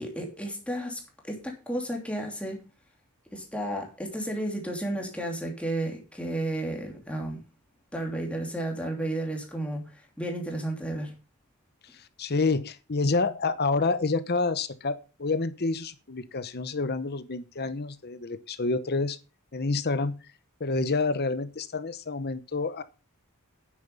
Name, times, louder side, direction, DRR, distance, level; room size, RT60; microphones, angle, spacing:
voice 1, 0.0-2.6 3.3-7.4 7.9-11.1, right 1 dB, 5° left, 2.9 m, -32 dB
voice 2, 11.9-19.2 19.5-20.2 20.6-22.8, left 3 dB, 45° left, 0.9 m, -28 dB
9.9 x 9.0 x 5.4 m
head